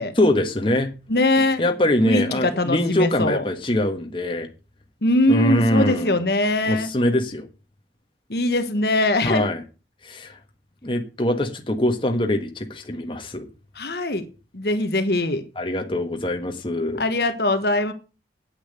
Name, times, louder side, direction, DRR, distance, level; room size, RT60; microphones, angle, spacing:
voice 1, 0.2-0.9 1.6-4.5 5.3-6.1 6.7-7.5 9.2-9.6 10.0-10.3 10.8-13.5 15.6-17.0, left 1 dB, 25° left, 1.4 m, -23 dB
voice 2, 1.1-1.6 2.1-3.4 5.0-6.9 8.3-9.5 13.8-14.3 14.5-15.4 17.0-17.9, left 2 dB, 60° left, 1.2 m, -21 dB
8.9 x 8.8 x 6.7 m
head